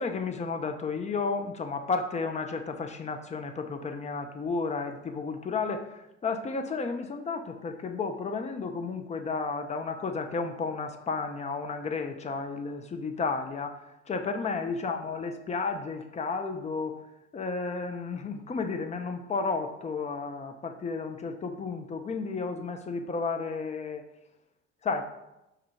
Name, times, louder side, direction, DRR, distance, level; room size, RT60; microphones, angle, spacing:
voice 1, 0.0-13.8 14.1-17.0 17.3-24.0 24.8-25.0, left 4 dB, 20° left, 5 dB, 0.4 m, -32 dB
4.6 x 2.4 x 4.4 m, 0.93 s
figure-of-eight pair, 50°, 36 cm